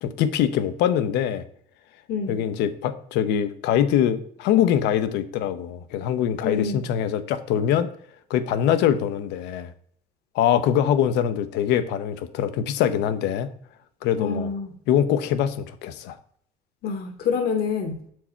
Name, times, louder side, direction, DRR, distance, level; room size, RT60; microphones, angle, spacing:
voice 1, 0.0-1.4 2.3-7.9 8.3-9.7 10.3-13.5 14.0-14.5 14.9-16.2, left 10 dB, 90° left, 12 dB, 0.6 m, -23 dB
voice 2, 2.1-2.4 6.4-6.8 14.2-14.7 16.8-17.9, left 5 dB, 65° left, 4 dB, 1.1 m, -26 dB
7.0 x 4.6 x 4.4 m, 0.63 s
cardioid pair, 110°, 17 cm